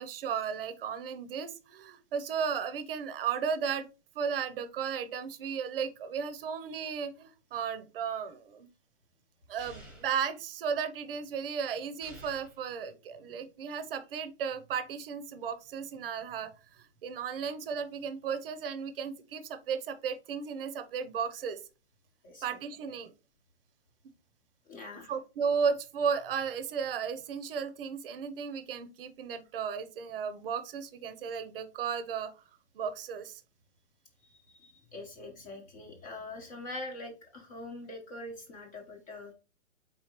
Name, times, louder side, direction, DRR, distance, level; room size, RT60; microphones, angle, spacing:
voice 1, 0.0-3.9 4.1-8.7 9.5-21.6 22.4-23.1 25.1-32.4 32.7-33.4, right 7 dB, 50° right, 11 dB, 0.7 m, -34 dB
sound 1, 9.6-10.2 12.0-12.6, right 1 dB, ahead, 1.1 m, -50 dB
voice 2, 24.7-25.1 34.2-39.3, left 2 dB, 30° left, 2 dB, 0.9 m, -44 dB
4.4 x 3.6 x 2.9 m, 0.32 s
hypercardioid pair, 140°, 37 cm